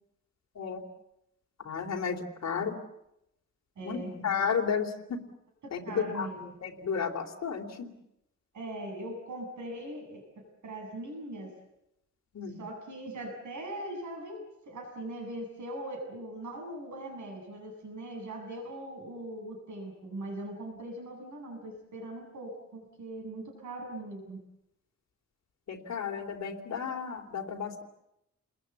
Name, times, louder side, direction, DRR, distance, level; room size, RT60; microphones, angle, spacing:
voice 1, 1.6-2.8 3.8-5.2 5.7-6.3 6.6-7.9 12.3-12.6 25.7-27.8, left 6 dB, 65° left, 3 dB, 3.3 m, -33 dB
voice 2, 3.8-4.1 5.9-6.4 8.5-11.5 12.6-24.4, right 1 dB, 80° right, 2 dB, 7.5 m, -40 dB
29.5 x 21.0 x 8.3 m, 0.84 s
wide cardioid pair, 170°, 29 cm